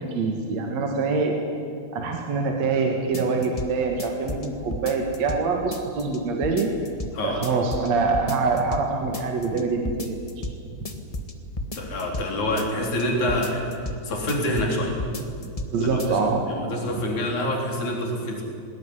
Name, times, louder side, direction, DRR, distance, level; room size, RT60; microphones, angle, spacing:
voice 1, 0.0-1.4 1.9-6.7 7.2-10.2 15.4-16.5, right 4 dB, 65° right, 2 dB, 3.0 m, -25 dB
sound 1, 3.1-3.7 4.0-5.4 5.7-6.2 6.4-7.1 7.4-7.9 8.1-8.9 9.1-9.6 9.9-10.6 10.9-12.3 12.6-13.0 13.3-14.0 14.3-14.7 15.0-15.7 16.0-16.1, left 1 dB, 30° left, 0.6 m, -32 dB
voice 2, 11.7-15.0 15.8-18.4, left 1 dB, 75° left, 0 dB, 5.1 m, -27 dB
19.5 x 19.5 x 9.9 m, 2.3 s
omnidirectional pair, 3.4 m